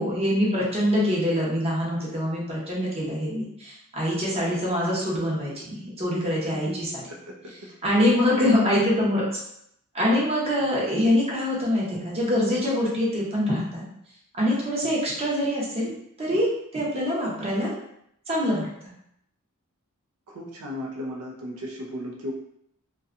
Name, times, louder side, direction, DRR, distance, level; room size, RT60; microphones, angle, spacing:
voice 1, 0.0-7.0 7.8-9.2 9.9-13.8 14.3-15.9 16.2-17.7 18.3-18.9, left 1 dB, 30° right, -5 dB, 0.6 m, -24 dB
voice 2, 8.2-8.6 10.6-10.7 14.8-14.9 20.3-22.3, left 1 dB, 75° right, -1 dB, 0.4 m, -35 dB
2.6 x 2.2 x 2.4 m, 0.74 s
head